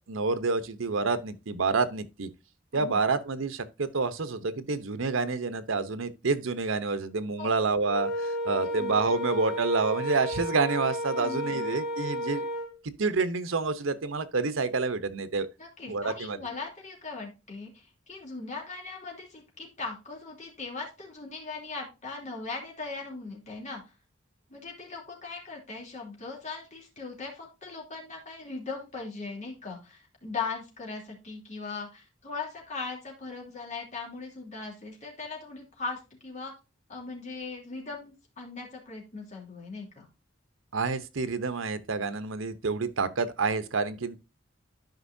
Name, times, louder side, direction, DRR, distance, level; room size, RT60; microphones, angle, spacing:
voice 1, 0.1-2.3 2.7-12.5 13.0-15.5 15.9-16.4 40.7-44.2, right 4 dB, 90° right, 0.8 m, -28 dB
Wind instrument woodwind instrument, 7.8-12.7, equal, ahead, 3.1 m, -32 dB
voice 2, 8.5-9.0 11.2-11.6 15.6-23.8 24.5-36.5 36.9-40.1, left 4 dB, 40° left, 3.1 m, -39 dB
12.0 x 5.2 x 2.7 m
head